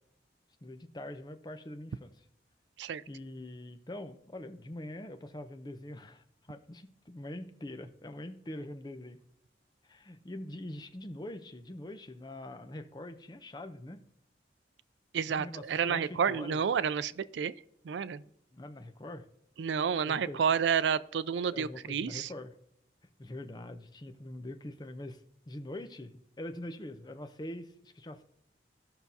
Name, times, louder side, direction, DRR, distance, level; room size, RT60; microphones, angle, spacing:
voice 1, 0.6-2.1 3.1-9.2 9.8-14.0 15.3-16.6 18.5-19.3 20.1-20.4 21.5-22.5 23.2-28.2, left 1 dB, 25° left, 8 dB, 0.6 m, -44 dB
voice 2, 15.1-17.5 17.8-18.2 19.6-22.3, right 7 dB, 80° right, 17 dB, 0.4 m, -30 dB
15.5 x 5.8 x 2.7 m, 0.76 s
head